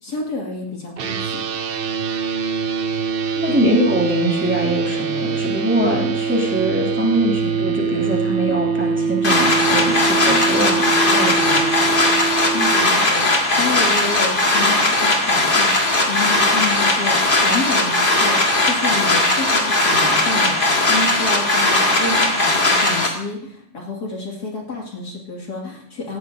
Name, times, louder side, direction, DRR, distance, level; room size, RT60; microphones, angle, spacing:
voice 1, 0.0-1.4 3.5-3.6 12.5-26.2, left 3 dB, 65° left, -1 dB, 2.9 m, -29 dB
sound 1, 1.0-12.8, right 5 dB, 75° right, 0.5 m, -23 dB
voice 2, 3.4-11.9, right 1 dB, 5° right, -2 dB, 2.6 m, -23 dB
sound 2, 9.2-23.1, left 2 dB, 30° left, 1.9 m, -18 dB
17.5 x 13.5 x 2.7 m, 0.67 s
omnidirectional pair, 1.8 m